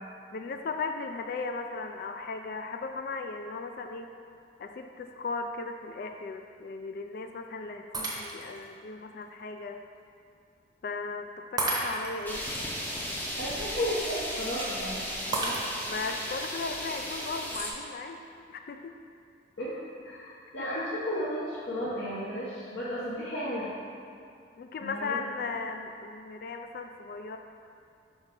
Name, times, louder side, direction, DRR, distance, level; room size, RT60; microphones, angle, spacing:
voice 1, 0.3-4.1 4.6-9.8 10.8-12.5 15.9-18.2 18.5-18.9 20.6-20.8 24.6-27.4, left 4 dB, 50° left, 5 dB, 0.3 m, -37 dB
Shatter, 7.9-8.6 9.2-9.3 11.6-12.3 15.3-16.1, right 2 dB, 20° right, 0.8 m, -32 dB
sound 1, 12.3-17.7, equal, 10° left, 0.6 m, -35 dB
voice 2, 13.4-15.6 19.6-19.8 20.0-23.7 24.8-25.2, equal, 75° left, -9 dB, 1.1 m, -34 dB
5.7 x 4.3 x 5.2 m, 2.4 s
head